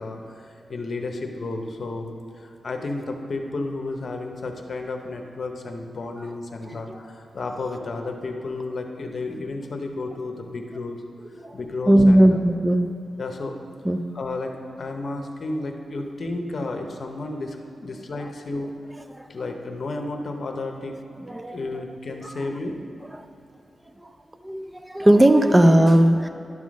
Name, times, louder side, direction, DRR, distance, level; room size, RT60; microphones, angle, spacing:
voice 1, 0.0-2.1 2.4-11.0 11.5-12.4 13.2-13.5 14.1-14.5 14.8-18.7 19.3-20.9 21.5-22.8, left 2 dB, 55° left, 3 dB, 0.8 m, -32 dB
voice 2, 11.9-12.9 13.8-14.0 16.0-16.1 19.1-19.3 21.2-21.6 22.2-22.6 23.1-23.3 24.0-24.1 24.4-26.3, right 1 dB, 15° right, 7 dB, 0.3 m, -18 dB
11.0 x 3.7 x 6.2 m, 2.7 s
wide cardioid pair, 135°, 0 cm